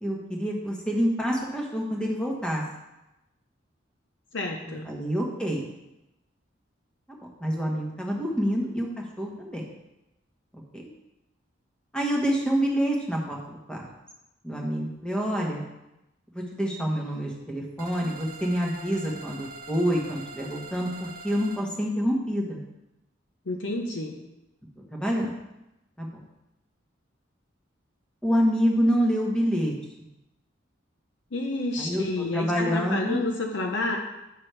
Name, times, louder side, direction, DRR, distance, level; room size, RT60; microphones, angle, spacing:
voice 1, 0.0-2.6 4.6-5.6 7.4-9.6 10.7-10.8 11.9-13.9 14.4-15.6 16.3-22.6 24.9-25.3 26.0-26.1 28.2-29.7 31.8-32.0 32.3-33.2, equal, 5° left, -1 dB, 1.2 m, -27 dB
voice 2, 4.3-4.9 23.5-24.2 31.3-34.0, left 2 dB, 70° left, 2 dB, 0.8 m, -29 dB
sound 1, 17.8-21.6, right 3 dB, 45° right, 0.8 m, -43 dB
8.8 x 6.0 x 3.3 m, 0.93 s
head